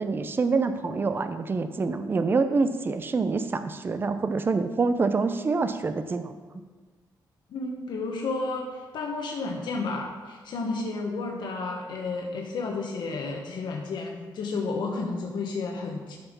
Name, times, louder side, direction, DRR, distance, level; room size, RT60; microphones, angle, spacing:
voice 1, 0.0-6.3, right 4 dB, 25° right, 9 dB, 0.6 m, -26 dB
voice 2, 7.5-16.2, left 3 dB, 70° left, 0 dB, 1.4 m, -32 dB
12.5 x 5.7 x 5.4 m, 1.4 s
cardioid pair, 140°, 8 cm